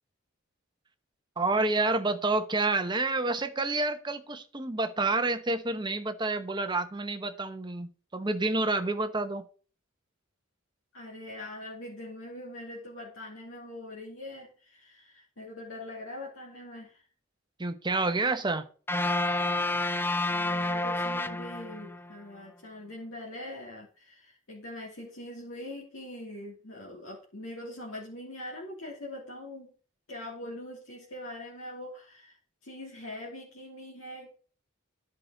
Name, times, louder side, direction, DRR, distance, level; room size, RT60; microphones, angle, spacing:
voice 1, 1.4-9.4 17.6-18.7, right 2 dB, 20° right, 0.9 m, -29 dB
voice 2, 10.9-17.0 20.3-29.7 30.1-32.4 32.6-34.3, left 1 dB, 75° left, 2.9 m, -42 dB
sound 1, 18.9-22.1, left 2 dB, 10° left, 0.4 m, -29 dB
10.5 x 5.9 x 6.3 m
head